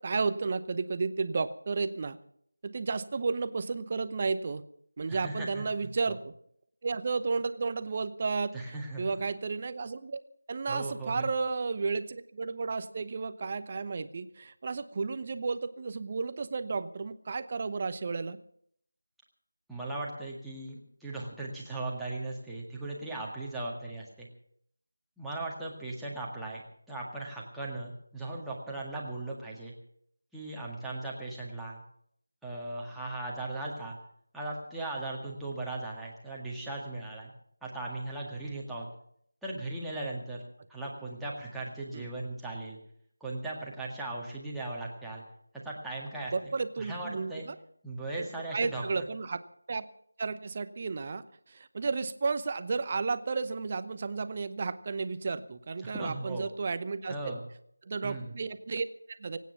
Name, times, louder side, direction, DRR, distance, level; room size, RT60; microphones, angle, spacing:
voice 1, 0.0-2.2 2.6-4.6 5.0-6.3 6.8-8.5 9.0-10.2 10.5-18.4 41.9-42.1 46.3-47.5 48.5-49.4 49.7-49.8 50.2-57.3 57.9-59.4, right 4 dB, 30° right, 13 dB, 0.8 m, -32 dB
voice 2, 5.1-5.6 6.1-6.2 8.5-9.2 10.7-11.3 19.7-24.3 25.2-26.6 26.9-29.7 30.3-31.8 32.4-34.0 34.3-37.3 37.6-38.9 39.4-40.4 40.7-42.8 43.2-45.2 45.5-47.5 47.8-49.1 55.8-56.5 57.1-57.5 58.0-58.3, right 2 dB, ahead, -6 dB, 1.9 m, -38 dB
24.0 x 9.3 x 5.9 m, 0.68 s
figure-of-eight pair, 165°, 0 cm